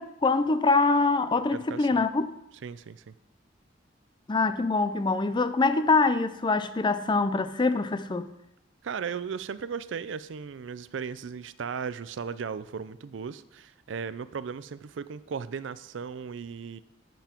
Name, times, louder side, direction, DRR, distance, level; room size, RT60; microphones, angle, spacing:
voice 1, 0.0-2.3 4.3-8.3, left 3 dB, 25° left, 0.4 m, -24 dB
voice 2, 1.5-2.0 2.6-3.1 8.8-16.8, right 6 dB, 75° right, 0.4 m, -36 dB
9.2 x 7.1 x 4.4 m
head